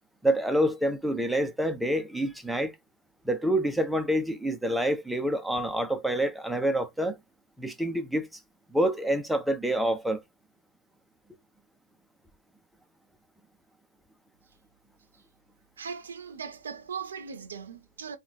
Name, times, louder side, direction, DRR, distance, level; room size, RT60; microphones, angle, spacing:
voice 1, 0.2-2.8 3.2-7.2 7.6-8.3 8.7-10.2, right 1 dB, ahead, 0.8 m, -27 dB
voice 2, 15.8-18.2, right 6 dB, 80° right, 0.7 m, -39 dB
3.7 x 2.5 x 2.8 m
hypercardioid pair, 100°, 0 cm